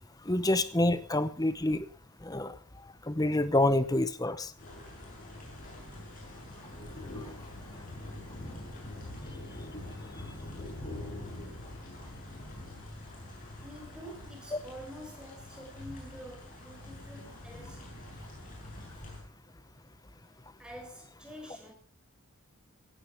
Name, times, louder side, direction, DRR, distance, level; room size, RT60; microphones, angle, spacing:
voice 1, 0.3-1.9 2.2-2.5 3.1-4.5, left 1 dB, 15° left, 0.8 m, -27 dB
sound 1, 4.6-19.2, left 1 dB, 40° left, 7.6 m, -44 dB
voice 2, 13.6-17.9 20.6-21.7, equal, 5° right, 5.6 m, -47 dB
16.5 x 16.5 x 3.6 m
head